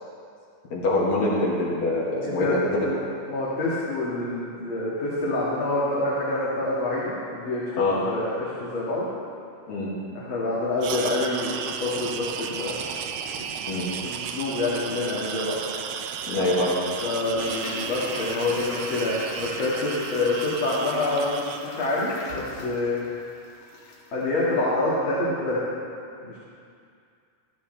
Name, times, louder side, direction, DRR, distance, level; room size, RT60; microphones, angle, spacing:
voice 1, 0.7-2.9 7.8-8.0 9.7-9.9 13.7-13.9 16.3-16.7, left 2 dB, 60° left, -7 dB, 3.2 m, -24 dB
voice 2, 2.2-2.6 2.8-3.0 3.3-9.1 10.1-11.6 11.8-12.8 13.6-15.6 17.0-23.0 24.1-25.6 26.2-26.4, left 2 dB, 45° left, -8 dB, 2.3 m, -27 dB
sound 1, 10.8-21.6, right 7 dB, 85° right, 2.2 m, -34 dB
Toilet flush, 17.1-24.2 24.4-24.5, left 3 dB, 90° left, 3.0 m, -40 dB
15.0 x 14.0 x 3.2 m, 2.4 s
omnidirectional pair, 3.6 m